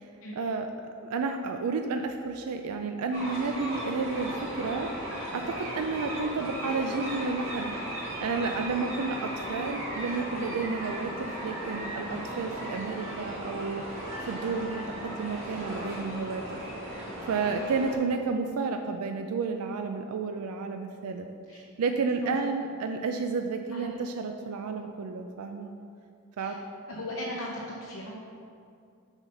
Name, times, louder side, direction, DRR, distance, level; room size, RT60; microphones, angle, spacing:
voice 1, 0.3-0.7 1.0-16.4 16.9-21.3 21.5-25.7 26.4-26.6, right 4 dB, 85° right, 5 dB, 0.4 m, -31 dB
sound 1, 3.1-17.9, equal, 60° right, 1.8 m, -36 dB
voice 2, 26.9-28.1, left 1 dB, 75° left, -4 dB, 0.8 m, -38 dB
7.1 x 4.0 x 5.5 m, 2.5 s
head